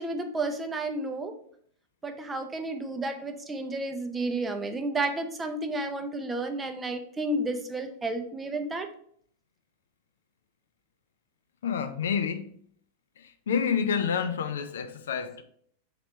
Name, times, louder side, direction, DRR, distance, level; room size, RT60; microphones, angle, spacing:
voice 1, 0.0-1.3 2.0-8.9, right 2 dB, 15° right, 0.5 m, -31 dB
voice 2, 11.6-12.5 13.2-15.4, left 7 dB, 65° left, 0.3 m, -29 dB
3.2 x 2.9 x 4.4 m
figure-of-eight pair, 90°, 0 cm